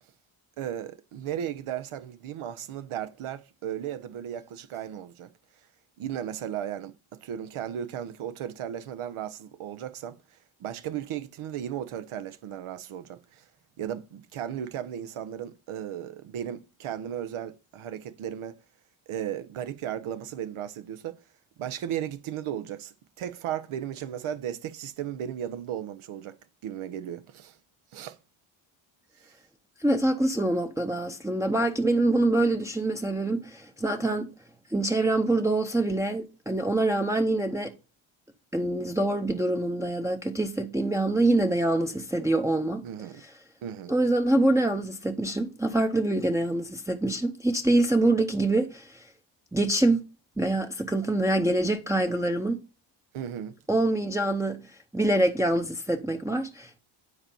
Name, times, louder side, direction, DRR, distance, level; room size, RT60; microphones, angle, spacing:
voice 1, 0.6-5.3 6.0-13.4 13.8-18.6 19.1-21.2 21.6-26.4 26.6-27.6 27.9-28.2 29.2-29.3 42.8-43.2 43.6-43.9 53.1-53.6, right 10 dB, 85° right, 1.0 m, -35 dB
voice 2, 29.8-34.3 34.7-37.7 38.5-42.8 43.9-49.1 49.5-50.0 50.4-52.6 53.7-56.8, right 2 dB, 5° right, 0.7 m, -25 dB
9.8 x 4.5 x 5.4 m
cardioid pair, 130°, 48 cm